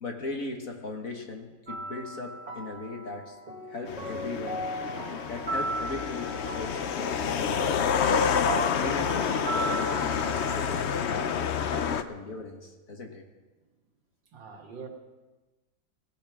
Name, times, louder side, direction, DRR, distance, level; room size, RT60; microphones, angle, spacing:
voice 1, 0.0-3.4 3.7-4.6 5.3-7.9 8.8-13.2, left 3 dB, 45° left, 2 dB, 1.9 m, -38 dB
sound 1, 1.7-11.2, right 1 dB, 25° right, 1.9 m, -36 dB
sound 2, 3.9-12.0, left 7 dB, 75° left, 0.6 m, -28 dB
voice 2, 14.3-14.9, right 5 dB, 75° right, 3 dB, 2.3 m, -45 dB
17.5 x 17.5 x 3.6 m, 1.2 s
omnidirectional pair, 2.0 m